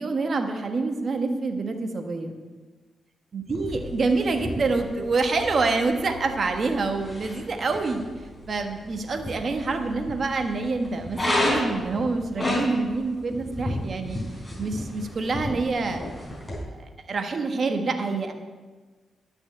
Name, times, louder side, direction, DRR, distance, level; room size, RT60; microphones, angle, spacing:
voice 1, 0.0-2.4 3.3-14.2 14.6-16.0 16.8-18.3, right 3 dB, 50° right, 5 dB, 1.4 m, -27 dB
sound 1, 3.5-16.6, left 1 dB, 15° left, 4.1 m, -33 dB
11.0 x 6.1 x 8.9 m, 1.3 s
cardioid pair, 105°, 0 cm